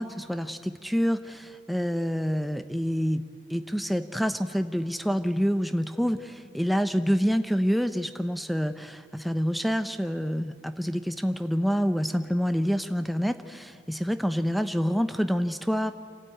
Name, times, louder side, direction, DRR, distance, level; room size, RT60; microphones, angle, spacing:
voice 1, 0.0-3.2 3.5-15.9, equal, ahead, 9 dB, 0.6 m, -27 dB
27.5 x 12.5 x 9.0 m, 2.1 s
head